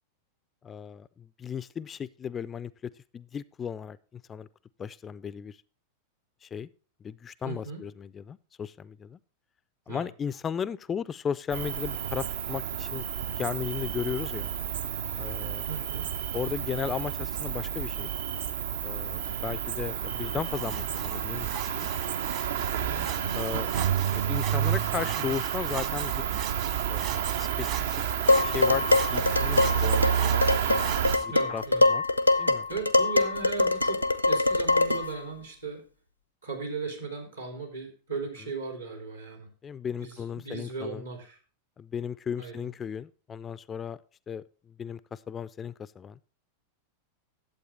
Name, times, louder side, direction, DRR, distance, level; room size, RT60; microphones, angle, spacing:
voice 1, 0.6-4.5 4.8-5.6 6.4-6.7 7.0-9.2 9.9-14.5 15.2-15.7 16.3-18.1 18.8-21.9 23.3-23.7 24.1-26.3 26.9-28.0 28.4-30.5 31.2-32.0 32.4-32.7 39.6-41.0 41.8-44.0 44.3-46.2, left 7 dB, 20° left, 18 dB, 0.3 m, -36 dB
voice 2, 7.4-7.8 9.9-10.1 15.7-16.1 22.7-23.1 31.2-31.8 32.2-32.4 32.7-35.8 36.4-39.5 40.0-41.4 42.4-42.7, right 4 dB, 80° right, 2 dB, 3.0 m, -37 dB
Cricket, 11.5-31.2, right 9 dB, 60° right, 0.5 m, -30 dB
sound 1, 20.5-31.3, right 9 dB, 40° right, 1.2 m, -41 dB
Dishes pots and pans, 28.3-35.2, left 2 dB, 90° left, 0.6 m, -24 dB
11.5 x 7.9 x 3.4 m, 0.37 s
figure-of-eight pair, 90°, 0 cm